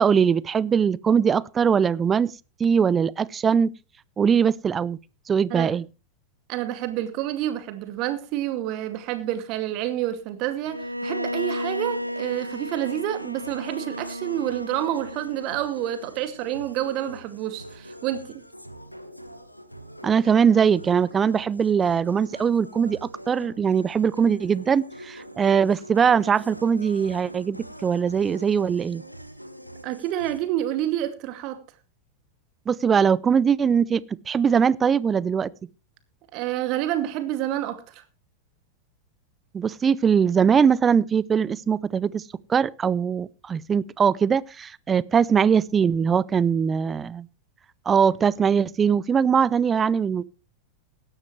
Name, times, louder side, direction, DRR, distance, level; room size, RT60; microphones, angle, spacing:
voice 1, 0.0-2.3 2.6-3.7 4.2-5.0 5.3-5.9 20.0-29.0 32.7-35.5 39.5-42.2 42.5-47.3 47.9-50.2, right 7 dB, 20° right, 0.6 m, -21 dB
voice 2, 6.5-18.4 29.8-31.6 36.3-38.0, right 12 dB, 40° right, 2.3 m, -28 dB
Bowed string instrument, 10.7-15.7, equal, 90° right, 0.6 m, -33 dB
sound 1, 11.2-30.4, equal, 90° left, 1.4 m, -44 dB
17.0 x 12.5 x 3.2 m
figure-of-eight pair, 90°, 0 cm